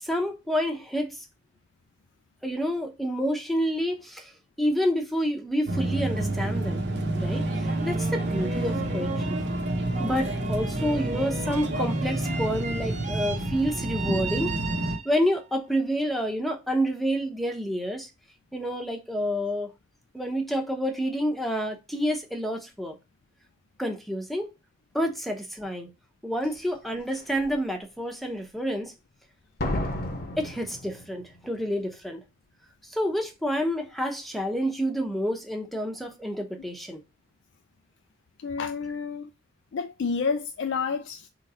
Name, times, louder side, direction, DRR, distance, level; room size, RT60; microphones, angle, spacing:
voice 1, 0.0-1.2 2.4-4.3 4.6-6.8 7.1-9.4 10.0-14.6 15.0-18.1 18.5-19.7 20.1-22.9 23.8-24.5 24.9-25.9 26.2-28.9 30.4-32.2 32.9-37.0, equal, ahead, 0.8 m, -28 dB
sound 1, 5.7-15.0, right 1 dB, 70° right, 0.9 m, -29 dB
sound 2, 7.2-15.4, right 4 dB, 40° right, 0.8 m, -38 dB
Slam, 26.4-26.5 27.1-27.5 29.6-31.5 31.7-31.8, left 1 dB, 55° left, 1.0 m, -32 dB
voice 2, 38.4-39.3 39.7-41.3, left 5 dB, 80° left, 0.4 m, -29 dB
3.9 x 3.2 x 4.1 m
head